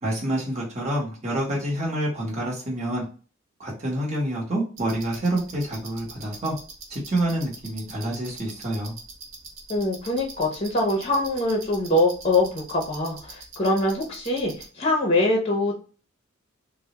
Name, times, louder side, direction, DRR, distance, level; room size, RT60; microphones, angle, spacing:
voice 1, 0.0-3.0 3.6-6.6 6.9-8.9, right 1 dB, 35° right, -3 dB, 1.0 m, -27 dB
sound 1, 4.8-14.6, right 3 dB, 70° right, 1.0 m, -43 dB
voice 2, 9.7-15.8, left 1 dB, 30° left, 1 dB, 0.7 m, -23 dB
3.3 x 2.1 x 2.8 m, 0.37 s
head